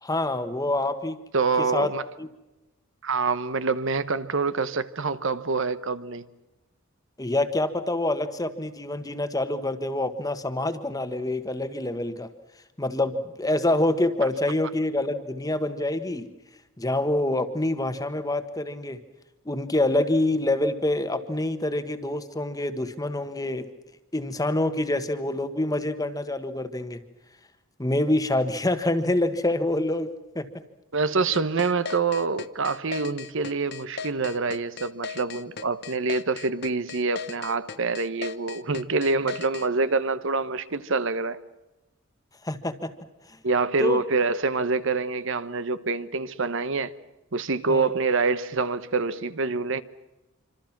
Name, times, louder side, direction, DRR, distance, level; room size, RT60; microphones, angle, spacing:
voice 1, 0.0-1.2 1.6-1.9 2.2-2.3 7.2-12.3 12.8-16.3 16.8-19.0 19.4-23.6 24.1-27.0 27.8-30.5 42.4-42.9 43.8-44.0 47.7-47.9, left 1 dB, 15° left, 1.4 m, -26 dB
voice 2, 1.3-2.0 3.0-6.3 30.9-41.4 43.4-46.9 47.3-49.8, right 4 dB, 65° right, 1.1 m, -26 dB
sound 1, 31.3-39.7, left 6 dB, 55° left, 1.1 m, -37 dB
26.0 x 26.0 x 6.0 m
head